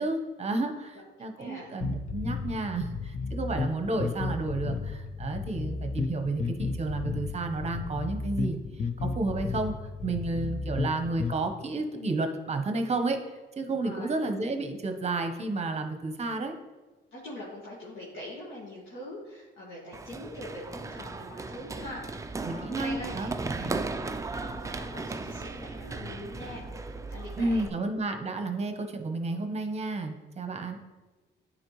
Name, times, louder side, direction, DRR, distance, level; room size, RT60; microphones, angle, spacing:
voice 1, 0.0-8.6 9.0-9.7 10.0-13.2 13.6-16.5 22.4-23.8 27.4-30.8, right 3 dB, 35° right, 6 dB, 0.9 m, -31 dB
voice 2, 1.4-1.7 13.8-14.2 17.1-23.3 23.6-23.8 24.4-26.6 27.1-27.8, left 1 dB, 70° left, -7 dB, 1.8 m, -43 dB
sound 1, 1.8-11.4, left 4 dB, 40° left, 0.6 m, -33 dB
Run, 19.9-27.7, right 3 dB, 15° right, 0.4 m, -36 dB
9.6 x 4.2 x 3.1 m, 1.2 s
cardioid pair, 90°, 20 cm